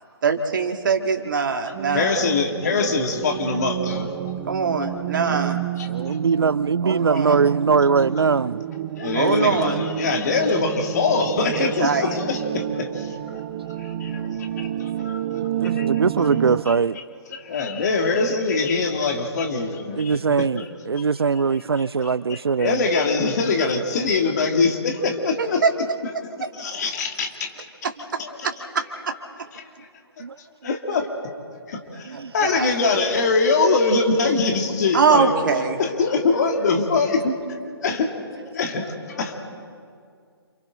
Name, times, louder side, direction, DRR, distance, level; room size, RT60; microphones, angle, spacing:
voice 1, 0.2-2.2 4.5-5.6 6.8-7.4 9.1-9.8 11.4-12.2 25.4-25.7 28.1-29.1 32.1-32.7 34.9-35.8, right 5 dB, 50° right, 1.9 m, -23 dB
sound 1, 1.7-16.6, right 12 dB, 25° right, 0.6 m, -30 dB
voice 2, 1.9-4.2 5.8-5.9 9.0-13.4 13.7-15.9 16.7-16.8 17.3-20.4 22.1-22.2 22.6-25.6 26.5-27.5 28.2-28.5 29.6-29.7 30.2-30.3 30.6-31.1 31.7-37.3 37.8-38.1 38.5-39.4, left 4 dB, 40° left, 2.5 m, -23 dB
voice 3, 5.2-8.6 15.6-17.0 19.9-22.8 30.2-30.4 32.0-32.3, right 5 dB, 70° right, 0.4 m, -22 dB
29.0 x 28.0 x 3.9 m
figure-of-eight pair, 140°, 13 cm